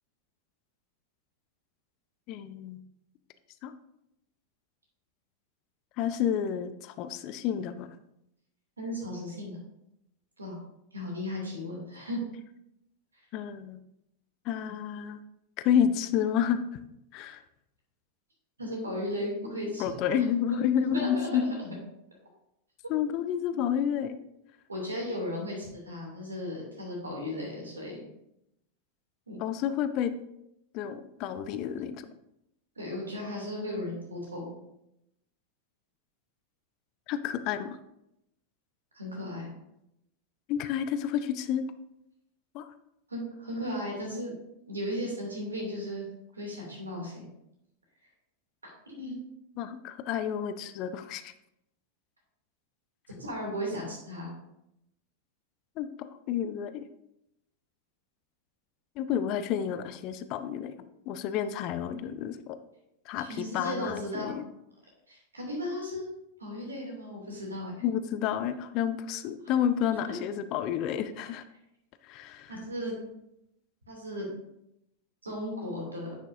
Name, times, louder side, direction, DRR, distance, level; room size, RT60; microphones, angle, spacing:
voice 1, 2.3-2.8 3.6-3.7 6.0-7.9 13.3-13.8 14.5-15.2 15.6-16.6 17.1-17.4 19.8-21.4 22.9-24.2 29.4-30.1 30.7-32.1 37.1-37.8 40.5-41.6 42.5-42.7 49.6-51.3 55.8-55.9 56.3-56.9 59.0-60.8 61.1-62.6 63.1-64.4 67.8-71.4 72.1-72.5, left 9 dB, 40° left, 12 dB, 0.5 m, -30 dB
voice 2, 8.8-9.6 10.4-10.6 10.9-12.2 18.6-20.6 20.9-21.7 23.1-23.2 24.7-28.0 29.3-29.4 32.8-34.5 38.9-39.5 43.1-44.3 44.7-46.1 46.3-47.3 48.9-49.2 53.1-54.3 63.2-64.3 65.1-66.1 66.4-67.7 69.4-69.6 70.1-70.2 72.5-73.0 73.9-74.3 75.2-76.1, left 1 dB, 75° right, -1 dB, 2.8 m, -36 dB
10.0 x 6.2 x 2.7 m, 0.83 s
figure-of-eight pair, 90°, 0 cm